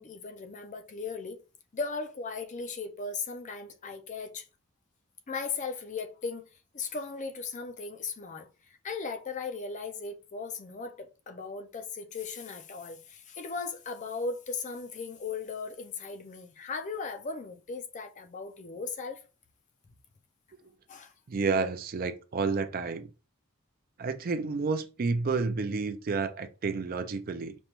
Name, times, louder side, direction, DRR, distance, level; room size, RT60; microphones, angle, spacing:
voice 1, 0.0-1.4 1.7-4.5 5.3-6.5 6.7-8.5 8.8-19.2 20.9-21.1, left 4 dB, 35° left, 0.4 m, -37 dB
voice 2, 21.3-23.1 24.0-27.6, right 4 dB, 45° right, 0.4 m, -30 dB
5.2 x 2.2 x 3.0 m
head